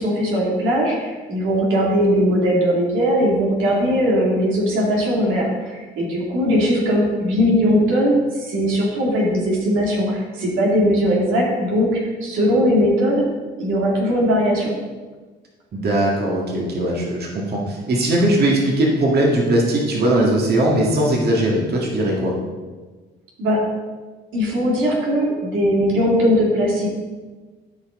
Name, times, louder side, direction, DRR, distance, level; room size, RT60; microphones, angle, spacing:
voice 1, 0.0-13.2 13.6-14.7 23.4-23.6 24.3-26.9, equal, 90° right, -3 dB, 2.5 m, -19 dB
voice 2, 15.7-22.3, right 1 dB, 55° right, -2 dB, 1.8 m, -19 dB
13.0 x 5.0 x 3.7 m, 1.3 s
cardioid pair, 90°, 20 cm